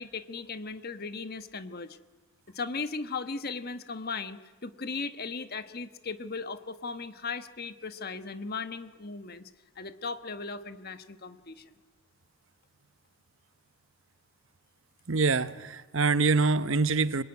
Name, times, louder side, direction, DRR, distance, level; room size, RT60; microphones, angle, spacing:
voice 1, 0.0-2.0 2.5-9.5 9.8-11.7, left 4 dB, 45° left, 10 dB, 1.3 m, -37 dB
voice 2, 15.1-17.2, right 4 dB, 60° right, 14 dB, 0.9 m, -25 dB
26.5 x 23.0 x 9.7 m, 1.2 s
head